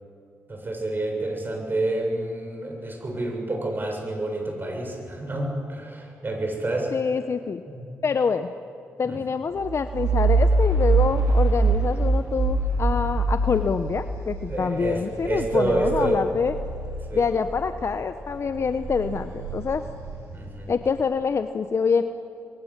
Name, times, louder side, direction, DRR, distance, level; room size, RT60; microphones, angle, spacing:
voice 1, 0.5-6.9 7.7-8.1 9.0-9.2 14.5-16.3 17.1-17.3 20.3-20.7, right 2 dB, 35° right, 2 dB, 7.0 m, -28 dB
voice 2, 6.9-7.6 8.0-8.5 9.0-16.5 17.1-19.8 20.7-22.0, left 5 dB, 55° left, 9 dB, 1.0 m, -25 dB
sound 1, 9.6-17.8 18.2-20.8, right 3 dB, 85° right, 6.6 m, -25 dB
27.0 x 22.0 x 7.4 m, 2.6 s
cardioid pair, 60°, 6 cm